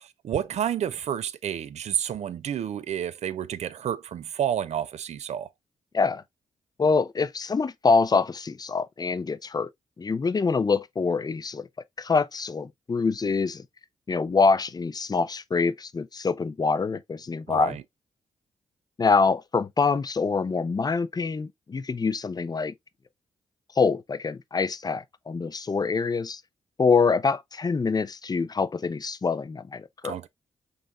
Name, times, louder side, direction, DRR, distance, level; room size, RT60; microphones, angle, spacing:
voice 1, 0.2-5.5 17.5-17.8 30.0-30.3, right 9 dB, 65° right, 0.5 m, -30 dB
voice 2, 6.8-9.7 10.0-11.7 12.0-13.6 14.1-17.8 19.0-22.7 23.7-26.4 26.8-30.2, left 4 dB, 30° left, 0.5 m, -25 dB
5.4 x 3.2 x 2.4 m
supercardioid pair, 45°, 13 cm